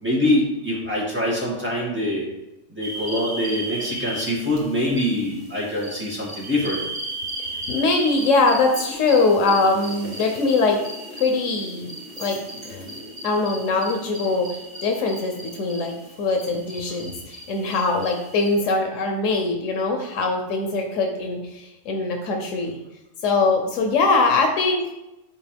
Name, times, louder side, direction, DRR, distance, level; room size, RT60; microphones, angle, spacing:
voice 1, 0.0-2.2 2.7-6.8, left 1 dB, 10° right, -6 dB, 2.4 m, -24 dB
sound 1, 2.8-18.6, right 1 dB, 50° right, 1.8 m, -36 dB
voice 2, 7.7-10.8 11.1-11.9 12.2-12.4 12.6-22.8 23.2-24.8, left 3 dB, 90° left, 3 dB, 1.2 m, -22 dB
11.0 x 4.4 x 3.5 m, 0.97 s
omnidirectional pair, 1.3 m